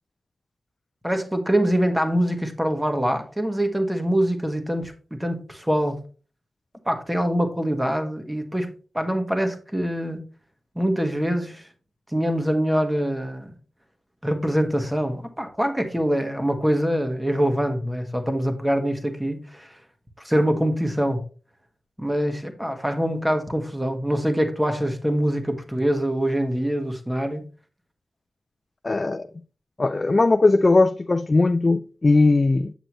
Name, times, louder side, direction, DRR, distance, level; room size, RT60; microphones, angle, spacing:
voice 1, 1.0-6.0 6.9-10.2 10.7-11.6 12.1-13.5 14.2-19.7 20.2-21.3 22.0-27.5, equal, 10° right, 1.4 m, -24 dB
voice 2, 28.8-29.3 29.8-32.7, left 3 dB, 35° left, 0.4 m, -19 dB
7.8 x 6.6 x 3.0 m
cardioid pair, 65°, 0 cm